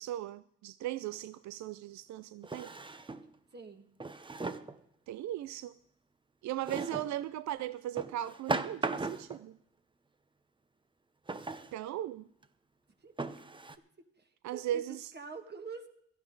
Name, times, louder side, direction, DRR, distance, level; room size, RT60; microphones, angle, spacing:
voice 1, 0.0-2.7 5.1-5.7 6.4-9.6 11.7-12.3 14.4-15.1, right 12 dB, 70° right, 0.5 m, -38 dB
Drawer open or close, 1.1-1.2 2.4-3.3 4.0-4.8 6.6-7.1 8.0-9.4 11.3-11.7 12.4-12.5 13.2-13.7, right 3 dB, 15° right, 0.8 m, -37 dB
voice 2, 3.5-3.9 6.8-7.0 13.0-13.4 13.8-15.9, right 4 dB, 35° right, 1.9 m, -47 dB
17.0 x 12.5 x 3.9 m
cardioid pair, 90°, 30 cm